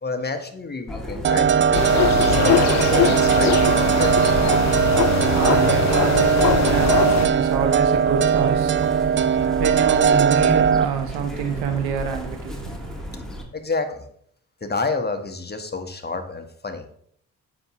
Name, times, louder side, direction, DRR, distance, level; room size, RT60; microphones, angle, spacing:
voice 1, 0.0-4.4 13.5-14.0 14.6-16.9, left 3 dB, 25° left, 1.3 m, -29 dB
Chirp tweet, 0.9-13.4, equal, ahead, 1.9 m, -33 dB
sound 1, 1.2-10.9, right 7 dB, 35° right, 0.4 m, -19 dB
sound 2, 1.7-7.3, left 13 dB, 50° left, 0.4 m, -22 dB
voice 2, 4.6-13.2, right 6 dB, 85° right, 1.0 m, -27 dB
7.8 x 6.0 x 3.1 m
supercardioid pair, 55°, 37 cm